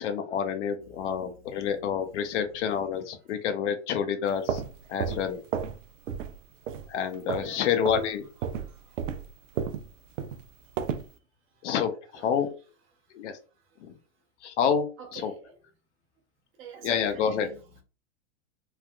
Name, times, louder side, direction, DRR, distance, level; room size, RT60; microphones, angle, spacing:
voice 1, 0.0-4.6 4.9-5.4 6.9-8.3 11.6-12.5 13.1-13.4 13.8-13.9 14.4-15.3 16.8-17.5, left 7 dB, 70° left, 0.8 m, -28 dB
voice 2, 0.8-1.7 2.0-2.1 2.3-2.4 2.9-3.0 7.3-7.7 8.7-9.1 11.5-11.7 12.2-12.3 13.6-13.7 15.0-15.5 16.6-17.8, right 6 dB, 35° right, 0.8 m, -47 dB
sound 1, 4.3-5.8 6.1-6.4 6.7-7.5 7.8-8.1 8.4-11.1, right 7 dB, 85° right, 0.5 m, -32 dB
3.3 x 2.4 x 2.2 m
hypercardioid pair, 115°, 37 cm